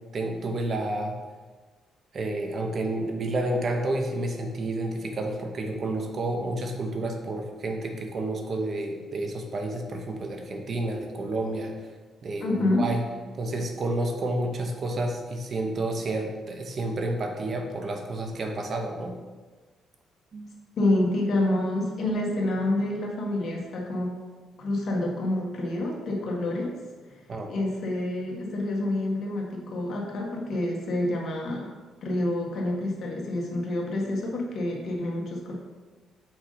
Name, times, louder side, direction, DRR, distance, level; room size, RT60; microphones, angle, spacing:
voice 1, 0.1-1.2 2.1-11.7 12.2-13.0 13.4-19.2 20.3-20.5 27.3-27.5, right 2 dB, 50° right, 3 dB, 1.0 m, -30 dB
voice 2, 12.4-12.8 20.8-26.7 27.5-31.7 32.0-35.5, left 1 dB, 60° left, -2 dB, 1.7 m, -28 dB
6.0 x 5.3 x 3.9 m, 1.3 s
cardioid pair, 90°, 0 cm